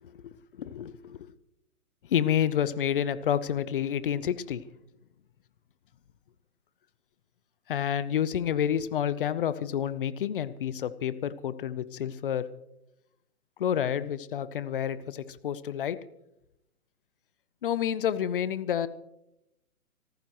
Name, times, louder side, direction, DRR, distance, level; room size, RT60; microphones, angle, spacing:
voice 1, 0.0-1.3 2.0-4.6 7.7-12.5 13.6-16.0 17.6-18.9, left 9 dB, 40° left, 16 dB, 0.7 m, -29 dB
26.5 x 14.5 x 3.0 m, 0.83 s
hypercardioid pair, 155°, 44 cm